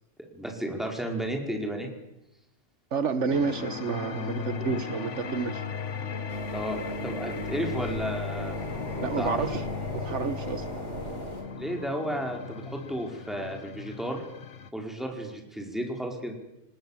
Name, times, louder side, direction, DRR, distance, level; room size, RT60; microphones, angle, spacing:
voice 1, 0.3-1.9 6.5-8.5 9.2-9.4 11.5-14.2 14.7-16.4, equal, ahead, 1 dB, 4.8 m, -33 dB
voice 2, 2.9-5.6 9.0-9.6 9.9-10.6, right 5 dB, 70° right, 11 dB, 1.3 m, -29 dB
sound 1, 3.3-14.7, left 5 dB, 70° left, 1.5 m, -36 dB
sound 2, 6.3-11.4, right 1 dB, 35° right, 5.0 m, -39 dB
26.5 x 19.0 x 7.5 m, 0.89 s
omnidirectional pair, 1.3 m